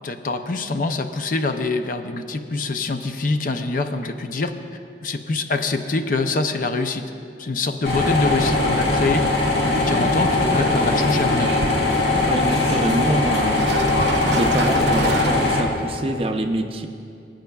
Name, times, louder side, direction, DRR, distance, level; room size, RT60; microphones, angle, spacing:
voice 1, 0.0-4.5 5.0-7.0 7.4-9.2 9.7-11.6, left 3 dB, 50° left, 8 dB, 0.5 m, -25 dB
sound 1, 7.8-15.6, left 2 dB, 70° left, 1.9 m, -20 dB
sound 2, 10.2-16.0, right 4 dB, 80° right, 0.6 m, -32 dB
voice 2, 12.2-13.7 14.3-16.9, right 1 dB, 30° right, 4 dB, 0.6 m, -25 dB
19.5 x 8.9 x 2.3 m, 2.5 s
head